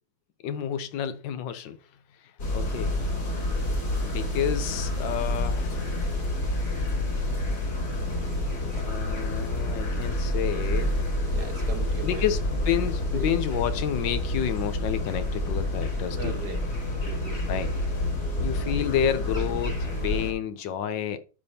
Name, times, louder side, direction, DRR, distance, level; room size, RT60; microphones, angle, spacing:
voice 1, 0.4-1.8 2.5-2.9 4.0-5.9 8.7-11.0 12.0-12.4 12.6-16.3 17.5-17.7 18.4-21.2, left 9 dB, 75° left, 1.3 m, -30 dB
sound 1, 2.4-20.3, left 1 dB, 55° left, 3.3 m, -28 dB
voice 2, 11.3-12.3 13.1-13.3 16.1-16.6 17.0-17.4 18.6-18.9, right 3 dB, 60° right, 1.7 m, -38 dB
12.0 x 5.1 x 2.8 m
omnidirectional pair, 2.1 m